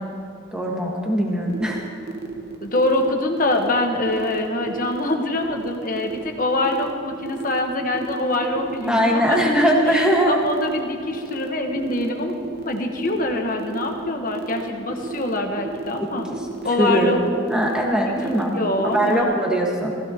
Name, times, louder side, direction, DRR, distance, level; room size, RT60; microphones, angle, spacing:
voice 1, 0.5-1.8 8.9-10.4 16.8-17.1 17.5-20.0, equal, 5° right, -2 dB, 1.5 m, -20 dB
sound 1, 1.5-19.2, right 3 dB, 50° right, 0.9 m, -33 dB
voice 2, 2.6-12.3 12.6-16.3 16.6-17.2 18.5-19.4, left 1 dB, 40° left, 3 dB, 1.3 m, -24 dB
19.0 x 15.5 x 3.0 m, 2.6 s
head